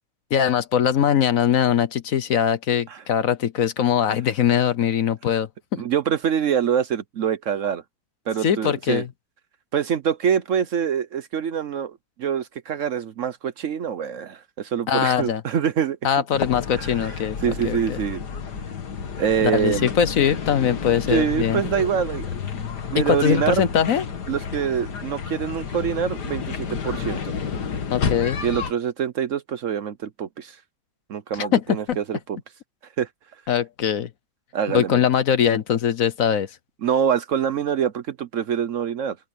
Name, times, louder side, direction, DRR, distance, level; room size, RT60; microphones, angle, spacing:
voice 1, 0.3-5.8 8.4-9.1 14.9-15.4 16.0-18.0 19.4-21.6 23.0-24.0 27.9-28.4 31.4-31.6 31.9-32.0 33.5-34.1 34.7-36.5, left 8 dB, 60° left, 1.3 m, -21 dB
voice 2, 5.8-7.8 8.3-9.0 9.7-16.0 16.8-17.1 17.4-18.2 19.2-19.9 21.1-22.3 22.9-23.6 24.3-27.3 28.4-30.6 31.1-32.4 33.0-33.1 34.5-35.0 36.8-39.2, right 8 dB, 60° right, 1.0 m, -25 dB
sound 1, 16.3-28.7, left 6 dB, 85° left, 2.2 m, -31 dB
open air
omnidirectional pair, 1.7 m